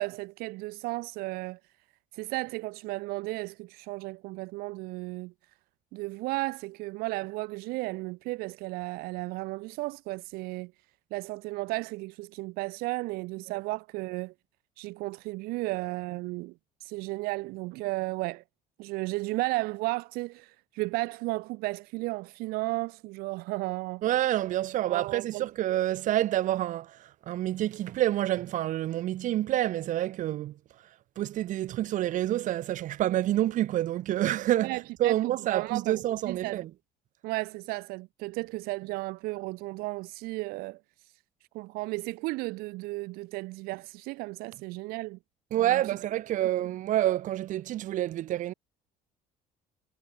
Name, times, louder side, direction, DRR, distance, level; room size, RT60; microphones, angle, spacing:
voice 1, 0.0-1.6 2.1-5.3 5.9-10.7 11.1-14.3 14.8-16.5 16.8-18.4 18.8-24.0 24.9-25.5 34.6-36.6 37.2-40.8 41.5-45.2 45.6-45.8 46.6-46.7, right 22 dB, 85° right, 2.1 m, -34 dB
voice 2, 24.0-30.6 31.2-36.7 45.5-48.5, right 13 dB, 60° right, 3.2 m, -28 dB
cardioid pair, 135°, 15 cm